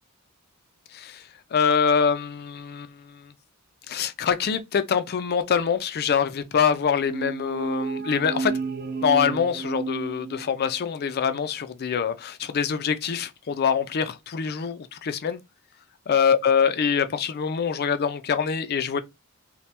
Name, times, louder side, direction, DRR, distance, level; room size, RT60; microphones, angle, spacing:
voice 1, 0.9-3.3 3.9-8.6 9.0-15.4 16.1-19.0, left 7 dB, 45° left, 0.4 m, -24 dB
sound 1, 7.1-10.8, right 4 dB, 45° right, 0.4 m, -31 dB
2.8 x 2.2 x 3.2 m
head